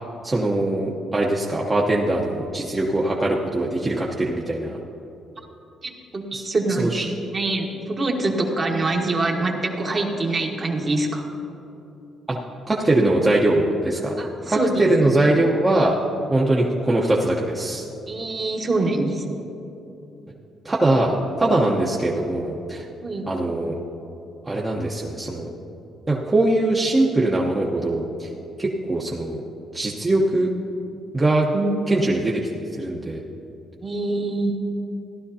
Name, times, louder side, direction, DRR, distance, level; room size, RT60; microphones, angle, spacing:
voice 1, 0.2-4.8 6.3-6.4 6.8-7.1 9.9-10.0 12.3-12.4 12.7-14.1 14.5-16.0 16.3-17.9 20.6-22.8 23.3-23.7 24.4-25.5 26.1-28.3 28.6-29.4 29.7-30.5 31.1-31.5 31.9-33.2, right 2 dB, 20° right, -3 dB, 1.0 m, -22 dB
voice 2, 5.8-7.1 7.3-11.3 14.2-15.1 18.1-19.2 23.0-23.3 31.5-31.7 33.8-34.6, right 2 dB, 35° right, 1 dB, 1.5 m, -25 dB
15.5 x 11.5 x 2.8 m, 2.9 s
cardioid pair, 90°, 0 cm